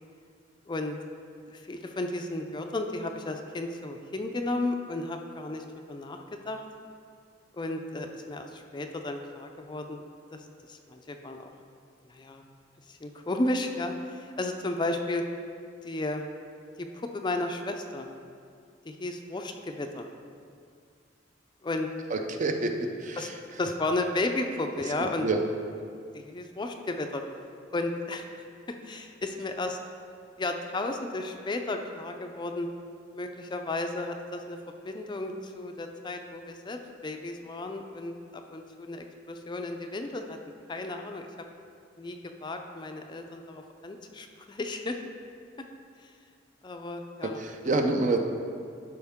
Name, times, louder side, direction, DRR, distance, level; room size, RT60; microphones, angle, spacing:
voice 1, 0.7-1.0 1.5-6.2 6.5-6.6 7.5-10.0 10.3-11.5 12.1-12.4 12.9-15.2 15.8-16.2 16.8-18.1 18.9-20.1 21.6-21.9 23.2-23.3 23.6-25.3 26.1-27.2 27.7-28.3 28.8-29.8 30.4-32.7 33.1-34.6 34.8-40.4 40.7-41.2 42.0-45.0 46.0-46.1 46.6-47.4, left 2 dB, 25° left, 5 dB, 0.4 m, -33 dB
voice 2, 22.1-22.7 23.0-23.4 25.0-25.4 47.2-48.2, right 2 dB, 45° right, 5 dB, 0.6 m, -28 dB
12.5 x 4.5 x 3.6 m, 2.3 s
head